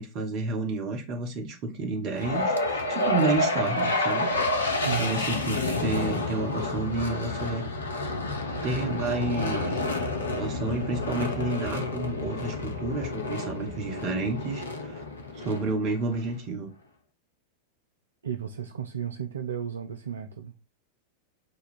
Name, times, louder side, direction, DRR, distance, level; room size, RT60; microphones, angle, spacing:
voice 1, 0.0-7.7 8.6-9.8 10.3-15.0 15.3-16.7, right 3 dB, 40° right, 1.2 m, -30 dB
sound 1, 2.1-16.3, left 2 dB, 70° left, 0.6 m, -29 dB
voice 2, 4.8-5.3 18.2-20.5, right 9 dB, 70° right, 0.4 m, -33 dB
5.1 x 2.3 x 4.2 m
figure-of-eight pair, 90°, 0 cm